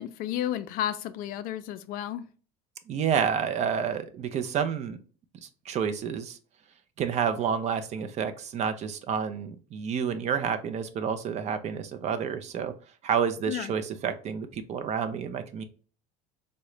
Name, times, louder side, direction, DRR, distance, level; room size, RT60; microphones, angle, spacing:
voice 1, 0.0-2.3 13.5-13.7, left 11 dB, 55° left, 11 dB, 0.4 m, -32 dB
voice 2, 2.9-5.0 5.4-6.4 7.0-12.7 13.0-15.6, right 7 dB, 40° right, 9 dB, 0.5 m, -29 dB
3.7 x 2.1 x 3.1 m, 0.38 s
supercardioid pair, 115°, 18 cm